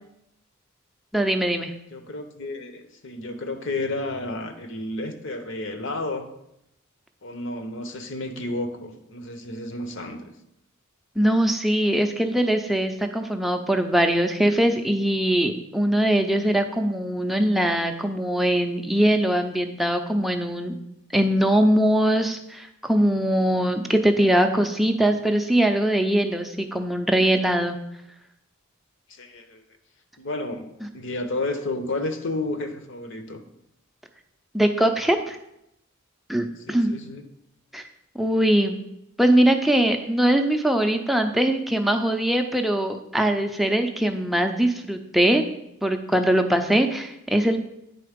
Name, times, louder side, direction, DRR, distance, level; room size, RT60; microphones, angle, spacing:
voice 1, 1.1-1.7 11.2-20.7 21.1-27.8 34.5-35.4 36.3-36.9 37.7-37.8 38.2-38.8 39.2-45.4 45.8-47.6, right 1 dB, ahead, 4 dB, 0.5 m, -21 dB
voice 2, 1.9-6.3 7.2-10.3 29.1-29.6 30.2-30.7 30.9-33.4 36.7-37.2, left 2 dB, 60° left, 7 dB, 0.8 m, -31 dB
9.2 x 3.8 x 5.1 m, 0.83 s
head